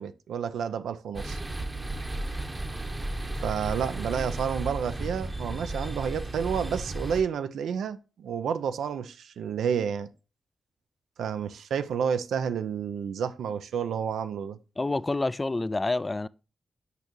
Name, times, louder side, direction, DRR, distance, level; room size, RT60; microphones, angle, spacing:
voice 1, 0.0-1.4 3.4-10.1 11.2-14.6, right 7 dB, 80° right, 0.4 m, -30 dB
sound 1, 1.1-7.2, right 2 dB, 25° right, 0.8 m, -34 dB
voice 2, 14.8-16.3, left 2 dB, 30° left, 0.3 m, -28 dB
8.2 x 5.3 x 3.0 m
supercardioid pair, 40°, 0 cm